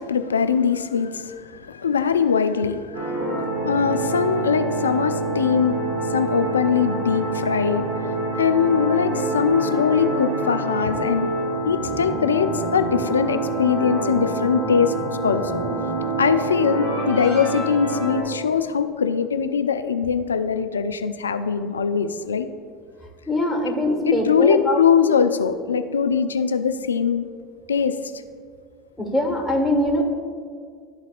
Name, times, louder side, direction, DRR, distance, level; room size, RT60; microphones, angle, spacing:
voice 1, 0.0-5.8 6.1-7.9 8.4-11.3 11.6-14.9 15.2-15.6 16.2-22.5 23.7-23.8 24.1-27.3 27.7-28.1, left 6 dB, 85° left, 9 dB, 0.3 m, -22 dB
sound 1, 2.9-18.2, right 2 dB, 80° right, 1.4 m, -26 dB
voice 2, 23.3-24.8 29.0-30.0, left 1 dB, 5° left, 0 dB, 1.6 m, -22 dB
12.0 x 4.0 x 2.5 m, 2.1 s
hypercardioid pair, 75°, 0 cm